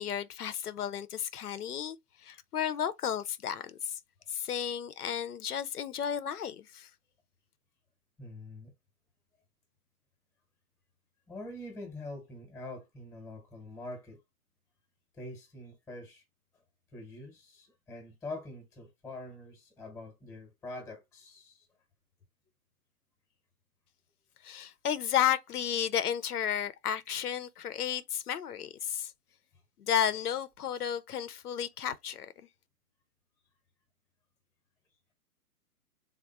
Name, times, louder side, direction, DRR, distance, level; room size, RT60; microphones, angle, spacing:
voice 1, 0.0-2.0 2.2-4.0 4.3-6.9 24.4-29.1 29.8-32.3, left 9 dB, 80° left, 0.6 m, -33 dB
voice 2, 8.2-8.7 11.3-14.2 15.1-16.2 16.9-21.7, left 2 dB, 5° left, 0.8 m, -44 dB
3.6 x 2.1 x 4.0 m
hypercardioid pair, 130°, 45 cm